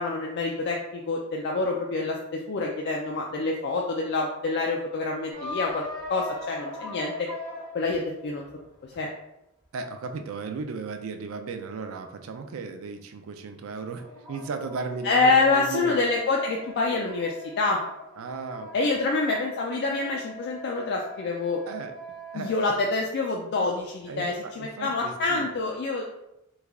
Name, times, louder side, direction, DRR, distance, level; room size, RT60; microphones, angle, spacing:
voice 1, 0.0-5.8 6.1-7.1 7.7-8.5 9.0-9.1 15.0-17.8 18.7-21.6 22.3-26.0, left 3 dB, 55° left, 0 dB, 0.3 m, -26 dB
sound 1, 5.3-8.9 13.7-22.8, left 3 dB, 35° right, 0.9 m, -41 dB
voice 2, 9.7-15.9 18.2-19.0 21.7-21.9 22.3-22.8 24.1-25.5, right 4 dB, 80° right, 6 dB, 0.4 m, -35 dB
3.2 x 2.3 x 3.5 m, 0.87 s
head